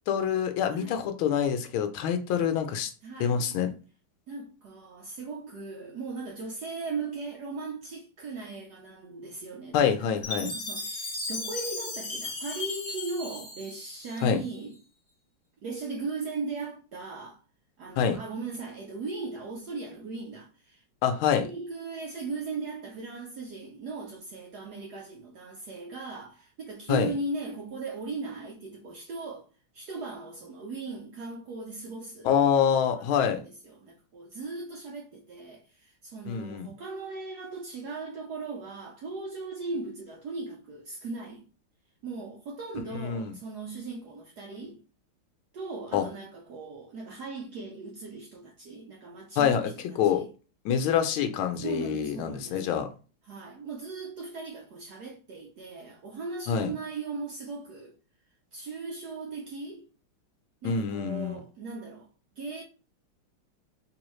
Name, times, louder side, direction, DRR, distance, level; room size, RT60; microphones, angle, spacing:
voice 1, 0.1-2.9 3.2-3.7 9.7-10.5 14.2-14.4 18.0-18.2 21.0-21.5 26.9-27.1 32.2-33.4 36.3-36.7 42.9-43.3 45.9-46.0 49.4-49.7 50.0-50.2 50.6-52.9 56.5-56.7 60.6-61.4, left 8 dB, 80° left, 1.4 m, -26 dB
voice 2, 0.7-1.0 3.0-3.4 4.3-14.8 15.6-17.4 17.8-20.8 21.4-29.5 29.7-41.5 42.0-44.8 45.5-50.3 51.6-52.8 53.2-58.0 58.5-59.9 60.6-62.1 62.4-62.6, right 3 dB, 70° right, 0.9 m, -38 dB
Chime, 10.2-14.5, left 3 dB, 40° left, 1.0 m, -36 dB
3.7 x 3.1 x 3.0 m
omnidirectional pair, 2.3 m